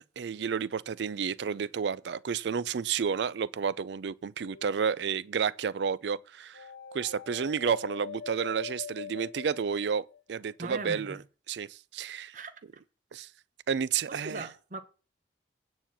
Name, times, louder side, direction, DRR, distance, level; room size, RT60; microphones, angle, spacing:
voice 1, 0.0-6.6 6.9-11.2 11.5-12.4 13.1-13.3 13.7-14.5, right 6 dB, 70° right, 0.4 m, -31 dB
sound 1, 4.4-5.1 6.5-10.4, left 7 dB, 80° left, 0.7 m, -43 dB
voice 2, 10.6-11.2 12.3-12.5 14.1-14.8, right 3 dB, 45° right, 1.0 m, -39 dB
9.2 x 4.3 x 7.3 m
head